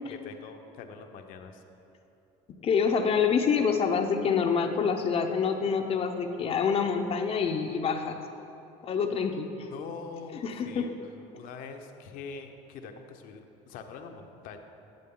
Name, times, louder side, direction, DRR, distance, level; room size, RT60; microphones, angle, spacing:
voice 1, 0.2-1.6 9.5-11.0 11.3-14.6, left 5 dB, 65° left, 5 dB, 0.9 m, -43 dB
voice 2, 2.6-8.2 8.8-9.7 10.4-10.9, left 6 dB, 40° left, 5 dB, 0.7 m, -26 dB
13.0 x 7.7 x 3.8 m, 2.9 s
cardioid pair, 120°, 15 cm